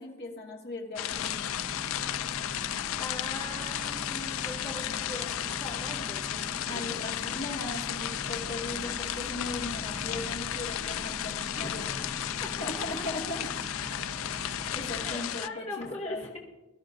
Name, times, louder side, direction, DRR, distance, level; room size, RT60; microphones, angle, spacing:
voice 1, 0.0-1.3 6.7-11.9 12.6-13.5 14.3-16.2, left 2 dB, 50° left, -1 dB, 1.9 m, -38 dB
sound 1, 1.0-15.5, left 11 dB, 65° left, 0.3 m, -34 dB
sound 2, 1.1-15.2, right 1 dB, 35° right, 0.6 m, -43 dB
voice 2, 2.7-6.4 6.7-7.0 11.6-12.1 12.4-12.7 14.4-14.5 15.0-16.4, left 2 dB, 30° left, -4 dB, 2.2 m, -41 dB
22.5 x 12.5 x 2.6 m, 1.1 s
head